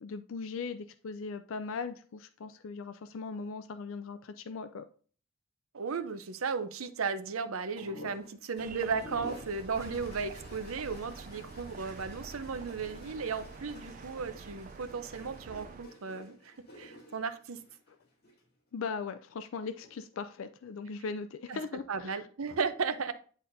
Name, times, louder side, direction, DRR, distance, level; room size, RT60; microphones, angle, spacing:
voice 1, 0.0-4.8 18.7-22.2, left 4 dB, 70° left, 0.4 m, -39 dB
voice 2, 5.7-17.6 21.5-21.6 21.9-23.1, right 5 dB, 85° right, 0.6 m, -35 dB
sound 1, 7.8-18.4 19.6-20.2, left 1 dB, 50° left, 2.2 m, -51 dB
sound 2, 8.6-15.8, right 4 dB, 40° right, 0.3 m, -47 dB
9.4 x 4.2 x 2.6 m
head